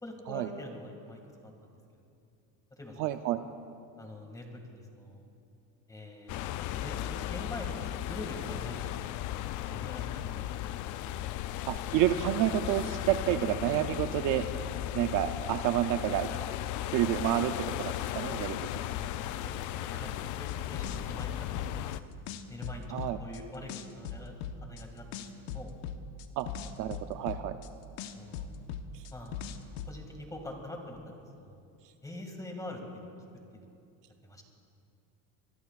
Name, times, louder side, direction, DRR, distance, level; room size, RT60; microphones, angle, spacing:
voice 1, 0.0-1.8 2.8-3.1 4.0-5.3 5.9-6.4 6.7-7.8 8.0-9.2 9.6-10.8 18.7-22.1 22.5-25.7 28.1-28.5 29.1-29.3 29.9-31.7 32.0-33.1 33.5-33.7 34.2-34.4, left 1 dB, 10° left, 2 dB, 2.1 m, -44 dB
voice 2, 3.0-3.4 11.7-14.5 14.9-16.3 16.9-18.6 22.9-23.2 26.4-26.5 26.8-27.6, right 12 dB, 55° right, 9 dB, 0.6 m, -29 dB
sound 1, 6.3-22.0, left 12 dB, 50° left, 0.5 m, -36 dB
sound 2, 20.5-22.0 22.3-23.4 23.7-24.8 25.1-27.7 28.0-29.9, left 8 dB, 70° left, 1.1 m, -39 dB
25.5 x 21.5 x 2.4 m, 2.5 s
cardioid pair, 140°, 40 cm